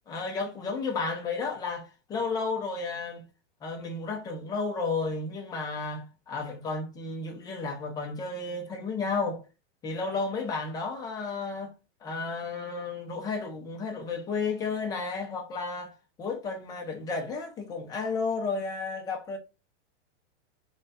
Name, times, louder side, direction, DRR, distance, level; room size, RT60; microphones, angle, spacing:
voice 1, 0.1-3.2 3.6-9.4 9.8-11.7 12.0-19.4, left 4 dB, 10° left, 0.5 m, -32 dB
3.3 x 2.3 x 4.0 m
supercardioid pair, 150°, 36 cm